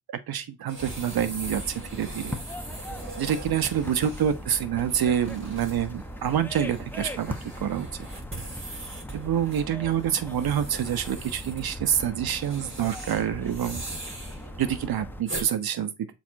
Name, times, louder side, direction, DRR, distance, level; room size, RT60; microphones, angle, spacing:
voice 1, 0.3-2.4 3.2-7.9 9.1-13.8 14.6-16.1, right 9 dB, 50° right, 1.3 m, -27 dB
sound 1, 0.7-15.5, right 2 dB, 25° right, 4.7 m, -41 dB
sound 2, 0.8-15.2, equal, 5° left, 1.3 m, -39 dB
7.3 x 4.7 x 4.2 m
hypercardioid pair, 55°, 46 cm